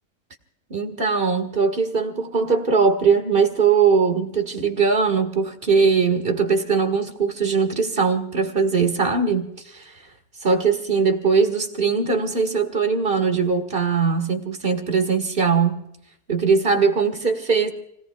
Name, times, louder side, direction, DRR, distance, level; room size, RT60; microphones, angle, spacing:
voice 1, 0.7-9.9 10.4-15.8 16.3-17.7, right 5 dB, 35° right, 1.9 m, -20 dB
30.0 x 18.0 x 2.3 m
omnidirectional pair, 1.7 m